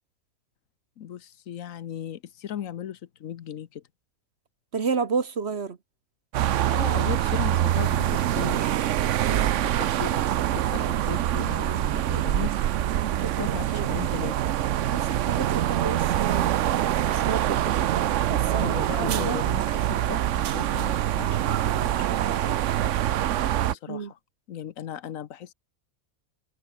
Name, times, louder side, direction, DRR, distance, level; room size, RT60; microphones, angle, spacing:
voice 1, 1.0-3.8 6.7-10.3 10.5-12.5 13.4-14.3 18.5-22.6 23.7-24.2 24.5-25.5, left 10 dB, 70° left, 1.2 m, -37 dB
voice 2, 4.7-5.8 12.9-13.9 14.9-16.6 16.9-19.4 23.9-24.1, right 5 dB, 50° right, 1.5 m, -31 dB
sound 1, 6.3-23.7, right 12 dB, 65° right, 0.9 m, -25 dB
omnidirectional pair, 1.5 m